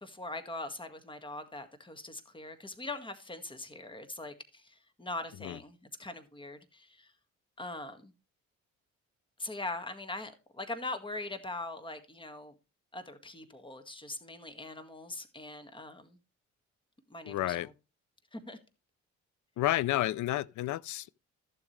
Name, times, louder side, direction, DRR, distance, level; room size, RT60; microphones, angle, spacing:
voice 1, 0.0-7.1 7.6-8.1 9.4-12.5 12.9-16.2 17.1-17.7 18.3-18.6, left 2 dB, 15° left, 1.9 m, -42 dB
voice 2, 17.2-17.7 19.6-21.1, left 15 dB, 70° left, 0.6 m, -31 dB
14.0 x 7.3 x 3.3 m
cardioid pair, 90°, 30 cm